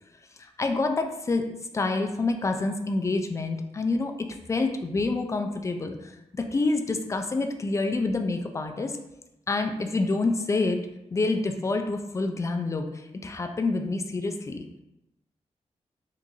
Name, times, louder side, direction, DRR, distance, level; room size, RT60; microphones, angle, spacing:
voice 1, 0.4-1.5 1.7-4.1 4.5-9.0 9.5-14.7, left 3 dB, 25° left, 5 dB, 0.4 m, -27 dB
3.7 x 2.5 x 2.9 m, 0.88 s
wide cardioid pair, 105°, 12 cm